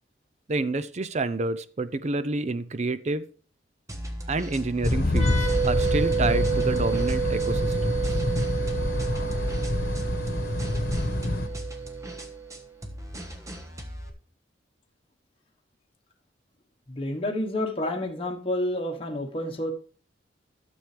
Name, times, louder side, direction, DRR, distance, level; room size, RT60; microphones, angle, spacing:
voice 1, 0.5-3.3 4.3-8.2, right 2 dB, 40° right, 14 dB, 0.5 m, -29 dB
sound 1, 3.9-14.1, equal, 20° right, 1.3 m, -39 dB
sound 2, 4.8-11.5, left 1 dB, 55° left, 1.2 m, -26 dB
sound 3, 5.1-12.6, right 7 dB, 90° right, 2.8 m, -30 dB
voice 2, 16.9-19.7, left 1 dB, 30° left, 2 dB, 1.2 m, -29 dB
12.5 x 7.1 x 3.3 m, 0.41 s
head